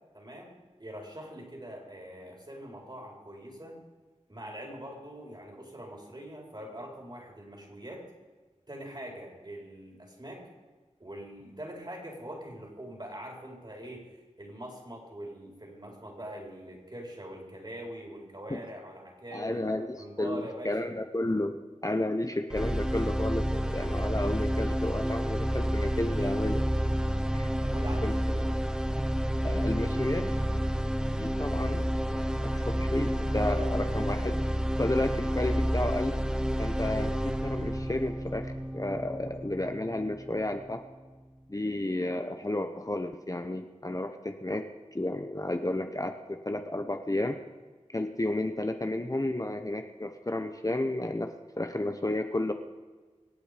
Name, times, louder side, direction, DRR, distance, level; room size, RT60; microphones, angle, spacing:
voice 1, 0.1-3.8 4.3-8.1 8.7-10.5 11.0-14.1 14.4-19.6 19.9-20.9 27.6-28.5, right 1 dB, 35° right, 0 dB, 4.4 m, -43 dB
voice 2, 19.3-21.5 21.8-26.6 27.3-27.5 28.0-28.1 29.4-30.3 31.2-34.4 34.8-36.2 36.6-40.8 41.5-44.7 44.9-47.4 47.9-52.5, left 1 dB, 30° left, 6 dB, 1.0 m, -32 dB
sound 1, 22.5-40.5, equal, 5° right, 0.9 m, -30 dB
25.0 x 8.6 x 5.1 m, 1.4 s
wide cardioid pair, 60°, 13 cm